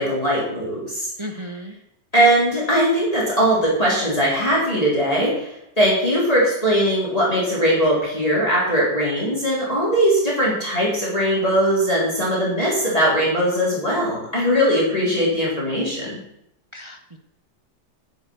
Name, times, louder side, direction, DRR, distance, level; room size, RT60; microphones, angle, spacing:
voice 1, 0.0-1.1 2.1-16.2, equal, 20° left, -6 dB, 3.9 m, -20 dB
voice 2, 1.2-1.7 16.7-17.2, equal, 45° right, 5 dB, 0.3 m, -34 dB
9.5 x 7.0 x 7.7 m, 0.79 s
omnidirectional pair, 1.9 m